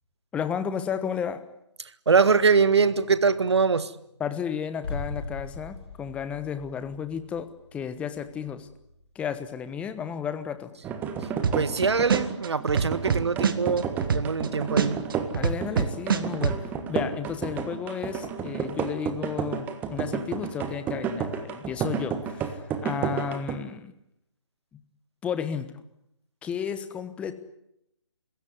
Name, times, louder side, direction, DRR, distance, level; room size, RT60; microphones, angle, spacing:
voice 1, 0.3-1.4 4.2-8.7 9.1-10.7 15.3-23.9 25.2-25.7 26.4-27.3, left 7 dB, 10° left, 11 dB, 1.2 m, -33 dB
voice 2, 2.1-3.9 11.2-11.3 11.5-15.0, right 5 dB, 65° right, 15 dB, 1.6 m, -23 dB
sound 1, 4.8-10.6 10.8-10.9, left 3 dB, 60° left, 5.7 m, -41 dB
sound 2, 10.8-23.6, right 6 dB, 10° right, 1.5 m, -31 dB
sound 3, 11.4-11.8 12.1-14.5 14.8-16.6, right 6 dB, 50° right, 1.9 m, -24 dB
28.0 x 16.5 x 9.5 m, 0.79 s
figure-of-eight pair, 150°, 15 cm